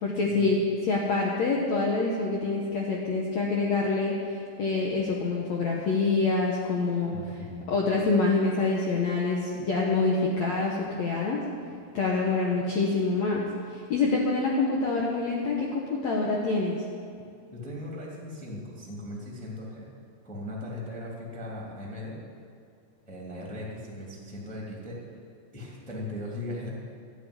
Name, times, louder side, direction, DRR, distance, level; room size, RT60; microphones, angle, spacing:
voice 1, 0.0-7.1 7.7-11.4 11.9-13.5 13.7-16.8, left 3 dB, 75° left, -2 dB, 1.6 m, -26 dB
voice 2, 7.1-7.8 17.5-19.9 20.2-22.1 23.1-25.0 25.5-26.7, left 1 dB, 5° left, -3 dB, 1.7 m, -38 dB
13.0 x 8.6 x 9.6 m, 2.4 s
omnidirectional pair, 5.0 m